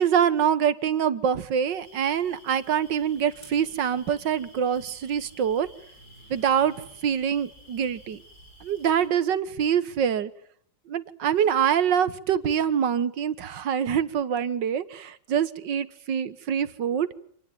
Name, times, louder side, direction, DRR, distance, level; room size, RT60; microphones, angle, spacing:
voice 1, 0.0-5.7 6.3-6.7 7.0-8.2 8.6-10.3 10.9-17.1, right 8 dB, 80° right, 15 dB, 1.9 m, -25 dB
sound 1, 1.6-9.1, equal, 60° left, 8.0 m, -52 dB
27.0 x 19.0 x 9.3 m, 0.64 s
omnidirectional pair, 1.9 m